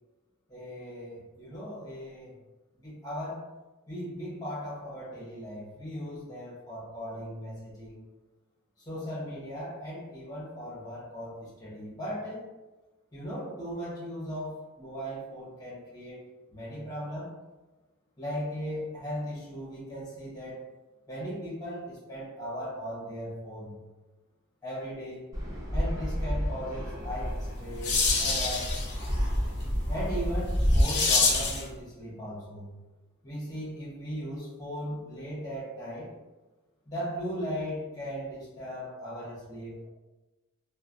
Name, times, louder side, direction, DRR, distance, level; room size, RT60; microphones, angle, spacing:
voice 1, 0.5-2.3 2.8-3.4 3.9-8.1 8.8-12.5 13.1-16.2 16.5-17.3 18.2-20.7 21.1-23.8 24.6-25.3 25.7-28.7 29.9-32.7 33.2-36.1 36.8-39.9, equal, 15° left, -7 dB, 1.0 m, -37 dB
Fixed-wing aircraft airplane, 25.3-30.8, equal, 15° right, 0.6 m, -30 dB
sound 1, 27.3-31.7, left 4 dB, 55° left, 0.5 m, -28 dB
3.0 x 2.2 x 2.5 m, 1.1 s
head